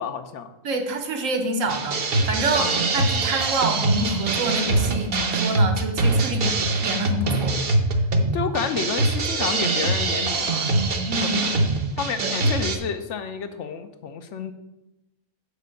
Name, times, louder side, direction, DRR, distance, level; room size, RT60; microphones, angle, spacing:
voice 1, 0.0-0.5 2.6-2.8 8.3-10.7 11.2-11.5 12.0-14.5, left 6 dB, 70° left, 8 dB, 0.9 m, -30 dB
voice 2, 0.6-7.6 11.1-11.4 12.2-12.3, right 2 dB, 80° right, 5 dB, 1.3 m, -27 dB
sound 1, 1.7-12.8, right 2 dB, 50° right, 0.9 m, -23 dB
6.7 x 4.6 x 6.5 m, 0.93 s
omnidirectional pair, 1.4 m